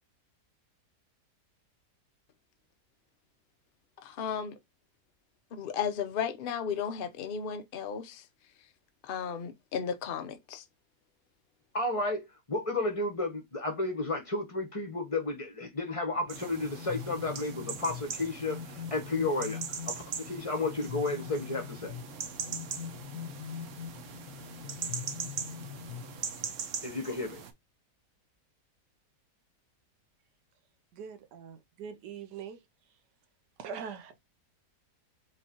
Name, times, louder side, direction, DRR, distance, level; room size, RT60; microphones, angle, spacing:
voice 1, 4.0-4.6 5.5-8.2 9.0-10.6, left 7 dB, 55° left, 0.6 m, -34 dB
voice 2, 11.7-19.6 19.9-21.9 26.8-27.4, left 2 dB, 25° left, 0.8 m, -32 dB
sound 1, 16.2-26.6, left 9 dB, 85° left, 1.2 m, -43 dB
sound 2, 16.3-27.5, right 7 dB, 60° right, 1.0 m, -41 dB
voice 3, 30.9-32.6 33.6-34.2, right 7 dB, 80° right, 1.3 m, -42 dB
4.8 x 3.1 x 2.8 m
omnidirectional pair, 1.8 m